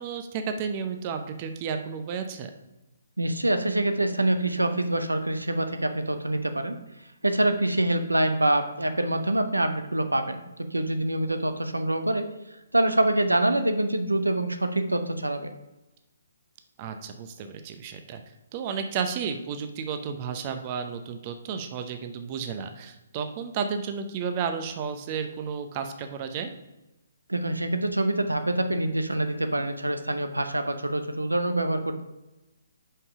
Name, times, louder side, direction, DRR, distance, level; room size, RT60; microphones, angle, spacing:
voice 1, 0.0-2.5 16.8-18.2 18.5-26.5, right 6 dB, 30° right, 7 dB, 0.6 m, -32 dB
voice 2, 3.2-6.7 7.2-10.4 10.7-12.2 12.7-15.5 27.3-32.0, right 1 dB, 85° right, 8 dB, 0.6 m, -25 dB
5.6 x 5.5 x 4.7 m, 1.0 s
figure-of-eight pair, 135°, 0 cm